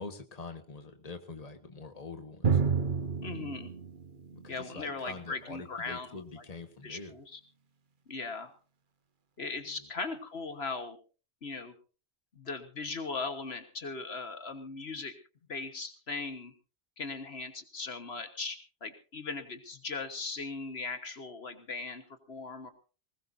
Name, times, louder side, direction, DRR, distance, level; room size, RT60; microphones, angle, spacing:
voice 1, 0.0-2.6 4.3-7.2 9.6-9.9, left 3 dB, 35° left, 6 dB, 1.6 m, -45 dB
Drum, 2.4-6.0, right 6 dB, 50° right, 1.1 m, -31 dB
voice 2, 3.2-3.7 4.5-6.2 6.8-7.4 8.1-8.5 9.4-11.0 11.4-11.7 12.4-15.1 15.5-16.5 17.0-22.7, left 4 dB, 70° left, 8 dB, 1.7 m, -38 dB
20.5 x 20.0 x 2.7 m, 0.35 s
omnidirectional pair, 1.1 m